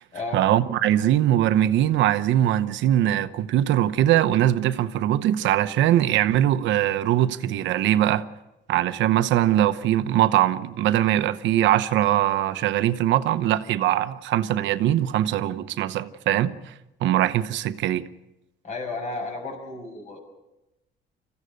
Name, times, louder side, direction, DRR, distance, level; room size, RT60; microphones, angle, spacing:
voice 1, 0.3-8.2 8.7-16.7 17.0-18.0, right 12 dB, 75° right, 1.0 m, -21 dB
voice 2, 18.6-20.2, left 3 dB, 40° left, 6.3 m, -33 dB
26.5 x 15.5 x 6.5 m
cardioid pair, 155°, 19 cm